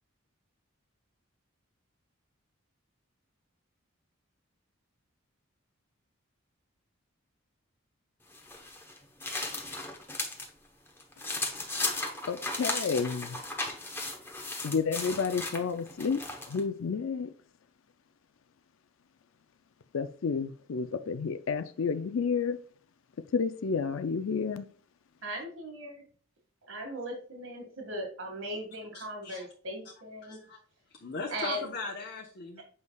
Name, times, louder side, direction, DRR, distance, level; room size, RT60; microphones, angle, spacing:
sound 1, 8.3-10.5 10.9-16.6, left 2 dB, 10° left, 0.9 m, -36 dB
voice 1, 12.3-13.4 14.6-17.3 19.9-22.6 23.3-24.7, left 5 dB, 70° left, 0.4 m, -30 dB
voice 2, 25.2-26.0 26.6-30.4 31.3-31.6, right 1 dB, 70° right, 1.9 m, -38 dB
voice 3, 28.9-29.5 30.2-30.6 30.9-32.6, left 3 dB, 50° left, 0.9 m, -39 dB
7.8 x 5.3 x 2.3 m
head